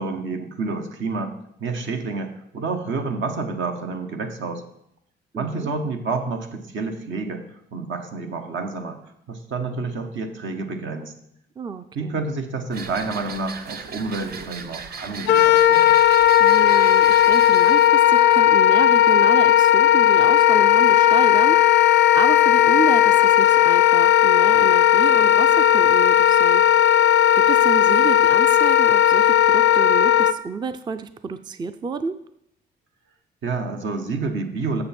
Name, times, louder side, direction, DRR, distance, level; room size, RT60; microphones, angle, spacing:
voice 1, 0.0-1.3 1.6-4.6 5.4-9.0 9.3-11.1 11.9-16.0 33.4-34.8, right 3 dB, 70° right, 6 dB, 1.0 m, -29 dB
voice 2, 5.3-5.7 11.6-12.2 16.4-26.6 27.3-32.2, right 5 dB, 20° right, 11 dB, 0.4 m, -30 dB
sound 1, 12.7-18.0, right 5 dB, 50° right, 0.7 m, -37 dB
Wind instrument woodwind instrument, 15.3-30.3, left 12 dB, 65° left, 0.4 m, -15 dB
7.6 x 6.9 x 4.3 m, 0.76 s
cardioid pair, 90°, 20 cm